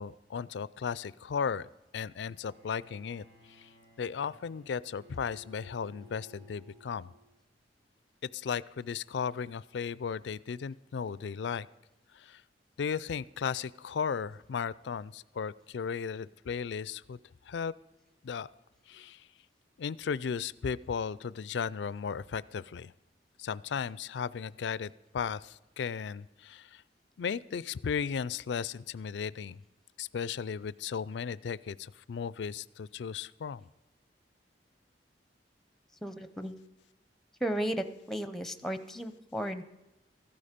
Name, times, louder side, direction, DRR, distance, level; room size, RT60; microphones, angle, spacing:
voice 1, 0.0-3.7 4.0-7.1 8.2-11.7 12.1-12.4 12.8-17.2 17.4-17.7 18.2-18.5 18.9-19.3 19.8-22.9 23.4-26.8 27.2-29.6 30.0-33.7, left 6 dB, 70° left, 20 dB, 0.4 m, -35 dB
Bowed string instrument, 2.3-7.6, left 1 dB, 75° right, 4.6 m, -58 dB
voice 2, 36.0-36.5 37.4-39.6, right 1 dB, ahead, 11 dB, 0.7 m, -34 dB
14.5 x 12.5 x 5.2 m, 0.96 s
head